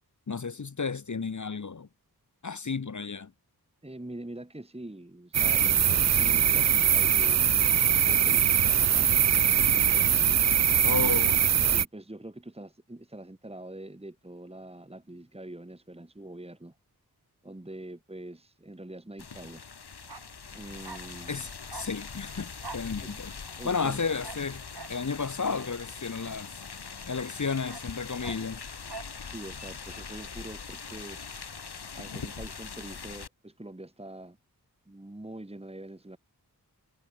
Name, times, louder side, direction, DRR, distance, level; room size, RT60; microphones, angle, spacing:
voice 1, 0.3-1.9 2.4-3.3 10.8-11.4 21.3-23.3 23.6-24.6 24.9-26.5 27.1-28.6, left 5 dB, 50° left, 1.0 m, -32 dB
voice 2, 3.8-7.6 8.0-10.3 10.8-16.8 17.4-19.6 20.5-21.5 23.0-23.2 23.6-24.1 29.1-31.4 31.9-34.4 34.9-36.2, right 1 dB, 15° right, 2.1 m, -44 dB
sound 1, 5.3-11.8, right 9 dB, 45° right, 0.4 m, -22 dB
sound 2, 19.2-33.3, left 5 dB, 80° left, 2.0 m, -42 dB
Bark, 20.0-27.0 27.3-29.2 29.5-29.6, right 4 dB, 75° right, 6.1 m, -47 dB
wide cardioid pair, 50°, 39 cm